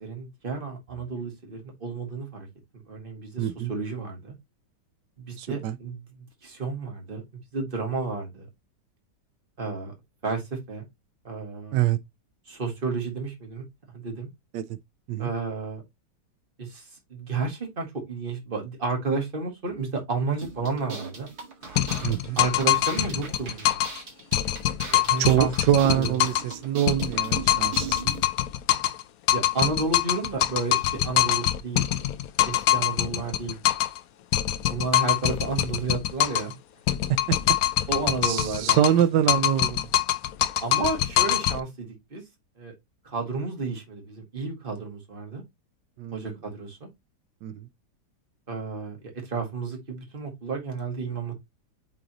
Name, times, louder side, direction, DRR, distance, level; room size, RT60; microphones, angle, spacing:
voice 1, 0.0-2.5 2.9-4.3 5.2-7.2 7.5-8.5 9.6-9.9 10.2-10.9 11.2-11.8 12.5-13.7 13.9-14.3 15.2-15.8 16.6-21.3 22.4-23.8 24.9-25.5 25.8-26.2 29.3-31.8 32.5-33.6 34.7-36.5 37.9-38.9 39.3-39.4 40.6-42.2 42.6-42.7 43.0-45.4 46.1-46.9 48.5-51.3, right 4 dB, 30° right, 2.1 m, -31 dB
voice 2, 3.4-3.7 5.4-5.8 11.7-12.0 14.5-14.6 15.1-15.3 22.0-22.4 25.2-28.1 37.3-37.4 38.2-39.9 46.0-46.3 47.4-47.6, right 11 dB, 90° right, 1.3 m, -24 dB
sound 1, 20.4-28.2, right 5 dB, 60° right, 2.3 m, -40 dB
sound 2, 21.8-24.0 24.3-26.5 26.9-29.0 29.3-34.0 34.3-36.5 36.9-39.0 39.3-41.6, left 13 dB, 70° left, 0.9 m, -24 dB
8.9 x 3.9 x 2.9 m
omnidirectional pair, 1.9 m